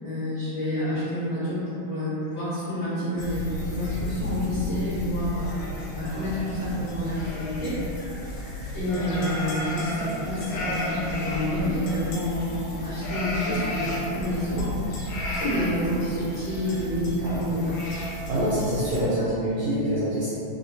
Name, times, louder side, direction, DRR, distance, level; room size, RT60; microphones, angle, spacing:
voice 1, 0.0-7.8 8.7-14.8 15.3-17.8, equal, 60° left, -15 dB, 1.3 m, -29 dB
sound 1, 3.2-19.0, left 2 dB, 80° left, 2.4 m, -32 dB
voice 2, 18.3-20.3, right 1 dB, 80° right, -10 dB, 1.6 m, -25 dB
6.2 x 2.1 x 2.7 m, 2.9 s
omnidirectional pair, 3.8 m